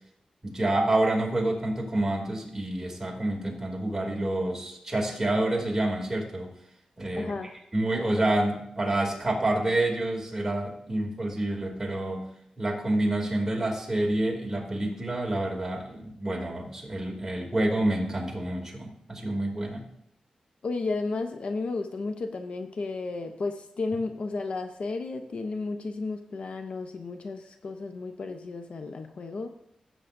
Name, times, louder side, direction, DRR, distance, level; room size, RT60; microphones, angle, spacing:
voice 1, 0.4-6.5 7.0-7.3 7.7-12.2 12.6-19.9, right 1 dB, 20° right, -1 dB, 2.7 m, -28 dB
voice 2, 7.2-7.5 20.6-29.5, left 3 dB, 65° left, 6 dB, 0.8 m, -33 dB
16.0 x 7.9 x 2.6 m, 0.74 s
wide cardioid pair, 100°, 2 cm